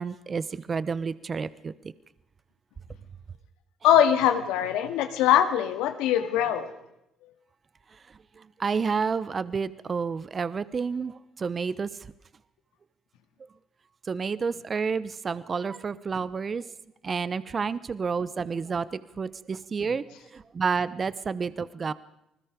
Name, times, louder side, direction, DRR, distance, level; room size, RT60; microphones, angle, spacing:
voice 1, 0.0-1.7 8.6-11.9 14.1-16.6 17.0-21.9, right 5 dB, 40° right, 16 dB, 1.0 m, -30 dB
voice 2, 3.8-6.7, left 10 dB, 85° left, 8 dB, 2.1 m, -22 dB
28.5 x 20.5 x 5.2 m, 0.82 s
supercardioid pair, 65°, 0 cm